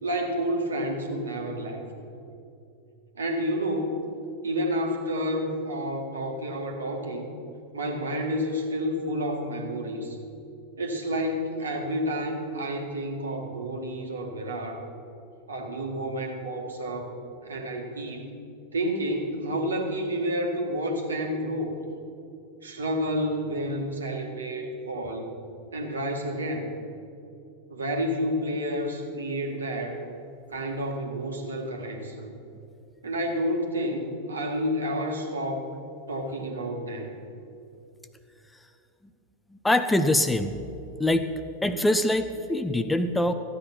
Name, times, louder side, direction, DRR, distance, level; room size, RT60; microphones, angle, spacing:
voice 1, 0.0-1.8 3.1-4.0 4.4-7.3 7.7-10.2 10.8-14.8 15.5-17.1 17.4-18.3 18.7-21.8 22.6-25.3 25.7-26.7 27.7-30.0 30.5-32.3 33.0-35.8 36.1-37.2, equal, 70° right, 2 dB, 1.8 m, -30 dB
voice 2, 39.6-40.5 41.0-41.3 41.6-43.3, left 1 dB, 5° left, 10 dB, 0.6 m, -23 dB
14.0 x 9.7 x 6.0 m, 2.6 s
figure-of-eight pair, 90°, 0 cm